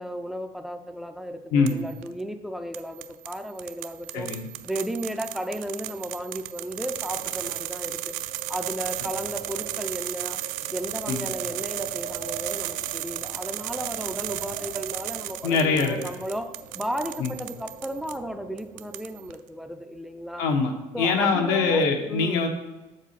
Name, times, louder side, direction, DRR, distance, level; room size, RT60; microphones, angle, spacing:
voice 1, 0.0-4.3 4.6-8.2 8.5-10.4 10.7-20.5 20.9-22.5, equal, ahead, 7 dB, 0.3 m, -34 dB
sound 1, 1.7-2.1 2.7-18.2 18.6-19.3, right 15 dB, 70° right, 0.4 m, -35 dB
Wind, 6.5-19.2, right 5 dB, 90° right, 1.7 m, -42 dB
voice 2, 15.4-16.0 17.2-17.3 20.4-22.5, left 4 dB, 85° left, 3 dB, 1.3 m, -23 dB
7.3 x 4.3 x 5.7 m, 1.0 s
cardioid pair, 175°, 14 cm